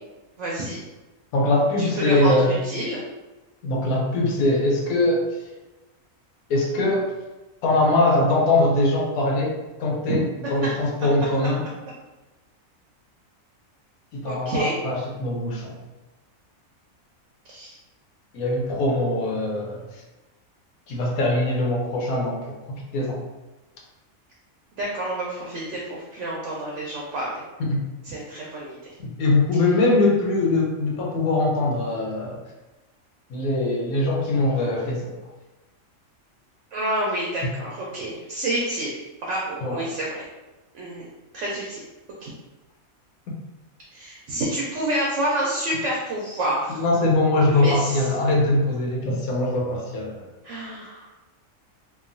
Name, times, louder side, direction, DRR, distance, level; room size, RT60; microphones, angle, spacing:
voice 1, 0.4-0.8 1.9-3.0 14.2-14.8 17.4-17.8 24.8-27.4 28.0-28.9 36.7-40.3 40.7-41.1 41.3-41.8 42.2-42.3 43.9-46.8 47.4-48.0 50.4-51.1, right 1 dB, 65° right, -4 dB, 0.8 m, -28 dB
voice 2, 1.3-2.6 3.6-5.4 6.5-7.1 7.6-11.6 14.1-15.8 18.3-20.0 20.9-23.2 27.6-27.8 29.0-32.4 33.3-35.1 39.6-39.8 46.8-50.3, left 2 dB, 80° left, -1 dB, 1.1 m, -22 dB
2.9 x 2.3 x 2.5 m, 1.1 s
omnidirectional pair, 1.5 m